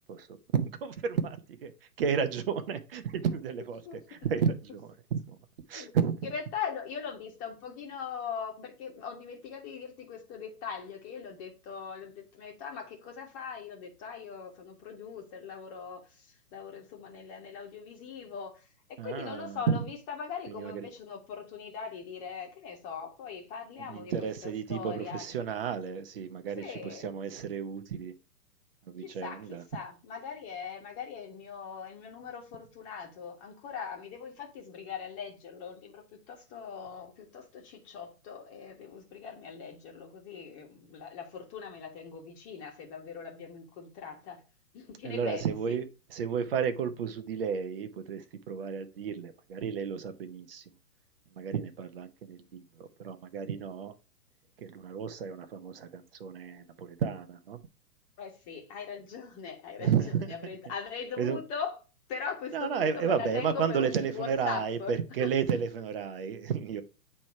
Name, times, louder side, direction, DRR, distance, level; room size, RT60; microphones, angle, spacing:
voice 1, 0.1-1.7 2.0-3.8 4.1-5.4 5.7-6.2 19.0-19.8 20.5-20.9 23.8-28.1 28.9-29.6 45.0-50.6 51.4-53.9 54.6-57.6 59.8-60.3 61.2-61.4 62.5-66.8, right 7 dB, 35° right, 0.8 m, -32 dB
voice 2, 6.3-18.6 19.0-25.3 26.6-27.1 29.0-44.4 44.7-45.8 58.2-61.7 62.1-64.9 65.2-65.3, left 6 dB, 25° left, 1.6 m, -41 dB
8.2 x 3.3 x 4.5 m
figure-of-eight pair, 120°, 48 cm